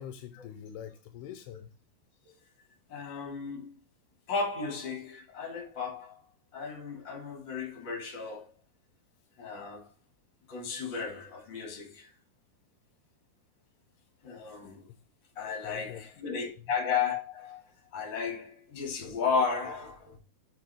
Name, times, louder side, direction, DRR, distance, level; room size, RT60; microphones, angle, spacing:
voice 1, 0.0-1.7 15.6-16.0, left 10 dB, 85° left, 2.6 m, -44 dB
voice 2, 2.9-3.7 4.3-6.2 6.5-8.5 9.4-9.9 10.5-12.1 14.2-14.9 15.4-17.6 17.9-20.2, left 5 dB, 30° left, 2.6 m, -34 dB
7.9 x 6.2 x 3.6 m
omnidirectional pair, 4.9 m